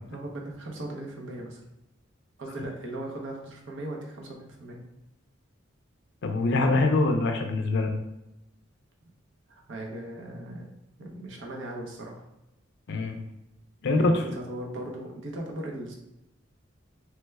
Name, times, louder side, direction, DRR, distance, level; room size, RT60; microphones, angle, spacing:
voice 1, 0.1-1.6 2.4-4.8 9.5-10.7 11.0-12.2 13.9-16.0, right 1 dB, 65° right, -1 dB, 0.7 m, -38 dB
voice 2, 6.2-7.9 12.9-13.2 13.8-14.2, left 2 dB, 60° left, 5 dB, 0.4 m, -24 dB
3.2 x 2.2 x 3.2 m, 0.91 s
head